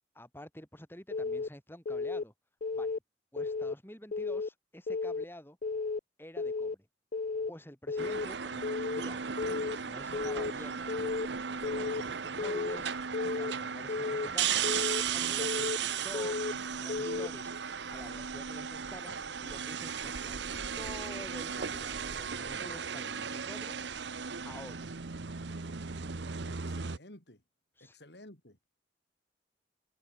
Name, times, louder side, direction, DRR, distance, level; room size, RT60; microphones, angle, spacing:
voice 1, 0.1-2.3 2.7-3.0 3.3-5.6 6.2-6.9 7.5-20.4 20.8-23.8 24.4-24.9 27.8-28.0, equal, 10° left, 6.1 m, -49 dB
Keyboard (musical) / Alarm, 1.1-1.5 1.9-2.2 2.6-3.0 3.4-3.7 4.1-4.5 4.9-5.2 5.6-6.0 6.4-6.7 7.1-7.5 7.9-8.3 8.6-9.0 9.4-9.8 10.1-10.5 10.9-11.3 11.6-12.0 12.4-12.8 13.1-13.5 13.9-14.3 14.6-15.0 15.4-15.8 16.1-16.5 16.9-17.3, left 4 dB, 45° left, 0.4 m, -33 dB
sound 1, 8.0-27.0, right 7 dB, 75° right, 0.9 m, -36 dB
voice 2, 26.4-27.4 27.8-28.7, left 1 dB, 65° left, 4.9 m, -54 dB
head